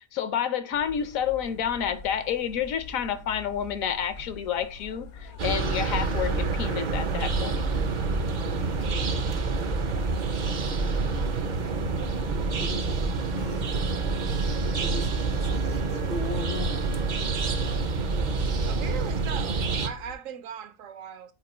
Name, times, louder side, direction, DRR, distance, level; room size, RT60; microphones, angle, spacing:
voice 1, 0.0-7.6, left 8 dB, 75° left, 1.1 m, -29 dB
sound 1, 0.7-20.1, left 4 dB, 90° left, 1.6 m, -45 dB
sound 2, 5.4-19.9, right 3 dB, 55° right, 0.5 m, -27 dB
voice 2, 12.5-13.0 13.3-13.7 14.7-16.7, left 3 dB, 50° left, 0.6 m, -37 dB
Wind instrument woodwind instrument, 13.0-18.0, right 10 dB, 90° right, 1.3 m, -45 dB
voice 3, 18.7-21.3, right 8 dB, 70° right, 1.0 m, -38 dB
5.3 x 4.3 x 4.2 m
omnidirectional pair, 1.5 m